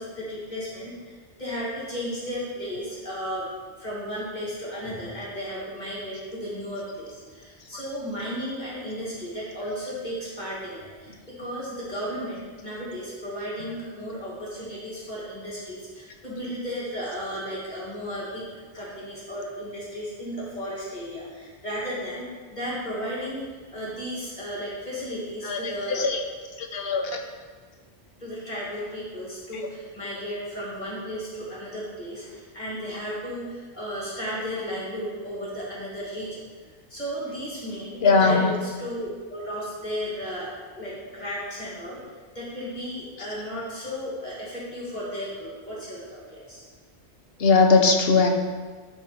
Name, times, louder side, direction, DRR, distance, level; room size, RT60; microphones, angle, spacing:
voice 1, 0.0-3.5 3.8-18.5 18.7-22.2 22.5-26.0 28.2-36.4 36.9-40.5 40.8-42.0 42.3-46.6, equal, 40° left, -7 dB, 2.4 m, -34 dB
voice 2, 25.4-26.2 26.6-27.1 38.0-38.5 47.4-48.3, left 4 dB, 65° left, 3 dB, 1.2 m, -20 dB
12.5 x 4.5 x 4.2 m, 1.4 s
omnidirectional pair, 1.1 m